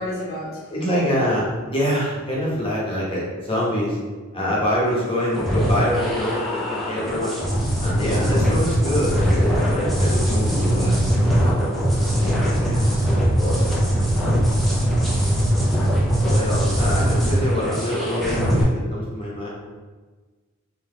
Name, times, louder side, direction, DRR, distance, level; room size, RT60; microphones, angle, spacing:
voice 1, 0.0-0.7 8.3-8.6, left 1 dB, 45° left, -7 dB, 0.9 m, -31 dB
voice 2, 0.7-4.0 4.3-7.4 7.8-12.9 13.4-13.7 14.1-14.4 16.2-19.5, equal, 25° left, -5 dB, 1.1 m, -25 dB
sound 1, 5.3-18.6, equal, ahead, 0.5 m, -21 dB
3.3 x 2.9 x 3.7 m, 1.4 s
head